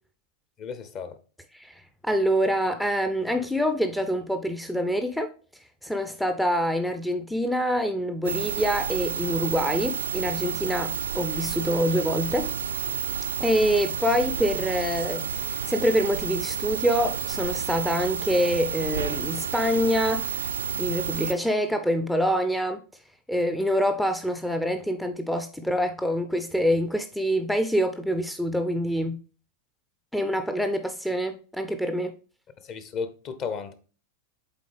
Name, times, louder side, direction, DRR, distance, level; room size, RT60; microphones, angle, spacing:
voice 1, 0.6-1.2 32.6-33.7, left 5 dB, 35° left, 0.8 m, -34 dB
voice 2, 1.5-12.5 13.4-20.4 20.8-23.0 23.3-29.2 30.1-32.1, equal, ahead, 0.5 m, -26 dB
sound 1, 8.2-21.3, right 7 dB, 70° right, 0.4 m, -30 dB
8.3 x 3.9 x 3.3 m
figure-of-eight pair, 90°, 0 cm